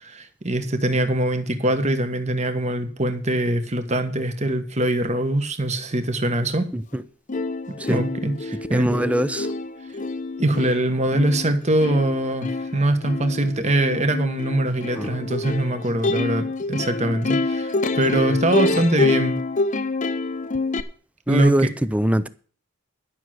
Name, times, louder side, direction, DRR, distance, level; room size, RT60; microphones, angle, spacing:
voice 1, 0.0-6.7 7.9-9.0 10.4-19.4 21.3-21.5, right 1 dB, 35° right, 1.4 m, -23 dB
Plucked string instrument, 6.9-7.0 7.3-20.8, left 2 dB, 35° left, 0.8 m, -27 dB
voice 2, 8.7-9.5 15.0-15.1 21.3-22.3, right 1 dB, 5° right, 0.5 m, -22 dB
12.0 x 6.4 x 7.7 m
head